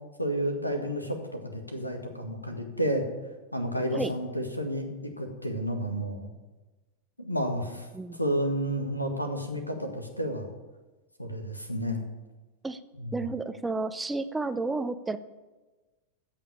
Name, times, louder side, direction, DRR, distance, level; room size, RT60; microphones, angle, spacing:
voice 1, 0.2-3.0 3.5-6.3 7.2-7.9 8.2-10.5 11.2-12.0 13.0-13.2, equal, 85° left, 5 dB, 1.6 m, -31 dB
voice 2, 13.1-15.2, right 3 dB, 10° right, 11 dB, 0.6 m, -31 dB
15.0 x 5.1 x 8.6 m, 1.2 s
figure-of-eight pair, 90°, 0 cm